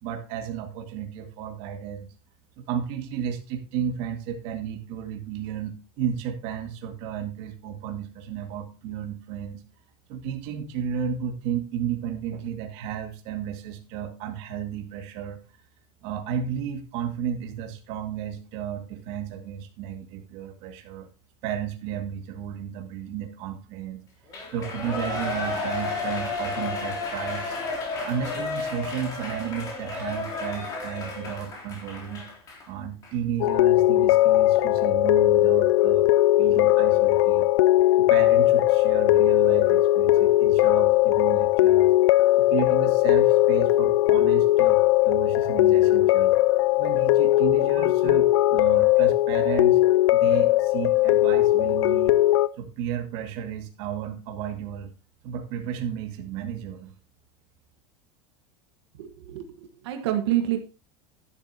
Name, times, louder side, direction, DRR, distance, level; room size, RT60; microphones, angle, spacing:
voice 1, 0.0-2.1 2.6-9.6 10.1-15.4 16.0-21.1 21.4-24.0 24.5-27.6 28.0-32.2 32.7-36.1 36.4-37.5 38.0-41.9 42.4-44.8 45.0-46.3 46.8-49.8 50.1-52.2 52.6-54.9 55.2-56.9, right 8 dB, 45° right, 4 dB, 2.2 m, -33 dB
Shout / Cheering, 24.3-32.6 33.0-33.1, left 3 dB, 25° left, 3.4 m, -32 dB
sound 1, 33.4-52.5, left 16 dB, 90° left, 0.5 m, -19 dB
voice 2, 59.0-60.6, right 13 dB, 80° right, 5 dB, 1.6 m, -27 dB
11.5 x 11.0 x 2.9 m, 0.31 s
supercardioid pair, 170°, 14 cm